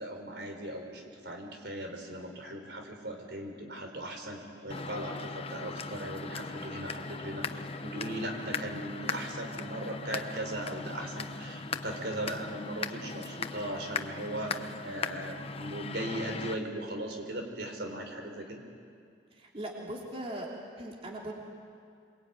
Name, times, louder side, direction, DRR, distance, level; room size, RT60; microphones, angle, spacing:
voice 1, 0.0-18.6, right 1 dB, 70° right, 4 dB, 4.3 m, -38 dB
sound 1, 4.7-16.5, left 4 dB, 35° left, 1.0 m, -39 dB
voice 2, 19.3-20.5 20.8-21.3, right 1 dB, 35° right, -1 dB, 3.3 m, -39 dB
27.0 x 23.0 x 9.3 m, 2.3 s
head